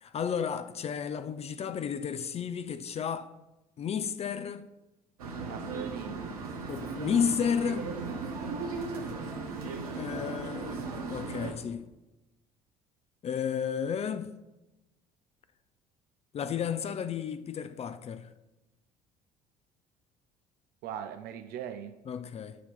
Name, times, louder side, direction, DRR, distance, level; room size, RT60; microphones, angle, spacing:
voice 1, 0.0-3.3 3.8-4.7 6.7-7.9 9.9-11.9 13.2-14.4 16.3-18.3 22.1-22.6, left 7 dB, 35° left, 0.4 m, -32 dB
sound 1, 5.2-11.5, right 4 dB, 90° right, 0.8 m, -36 dB
voice 2, 5.4-6.4 10.3-10.7 20.8-22.0, right 9 dB, 60° right, 0.4 m, -41 dB
8.3 x 2.9 x 5.8 m
hypercardioid pair, 60°, 18 cm